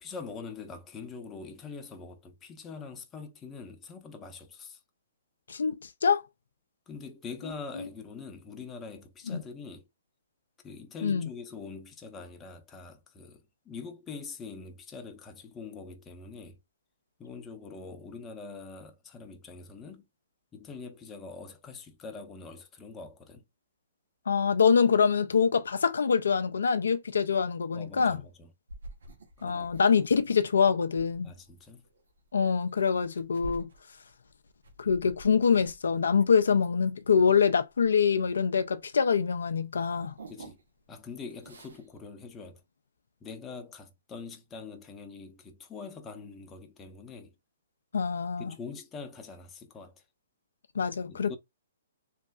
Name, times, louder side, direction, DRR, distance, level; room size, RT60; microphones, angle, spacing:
voice 1, 0.0-4.8 6.9-9.8 10.6-16.6 17.2-20.1 20.5-23.4 27.7-28.5 29.4-29.7 31.2-31.9 40.3-40.6 40.9-42.6 43.2-47.3 48.4-50.0 51.1-51.4, left 4 dB, 20° left, 0.6 m, -44 dB
voice 2, 5.5-6.2 9.3-9.4 11.0-11.3 24.3-28.2 29.4-31.3 32.3-33.7 34.8-40.1 47.9-48.5 50.8-51.3, left 6 dB, 75° left, 0.3 m, -25 dB
sound 1, 28.7-39.1 39.3-40.9 41.2-41.9, right 1 dB, 75° right, 0.8 m, -49 dB
3.1 x 2.6 x 2.3 m
hypercardioid pair, 130°, 0 cm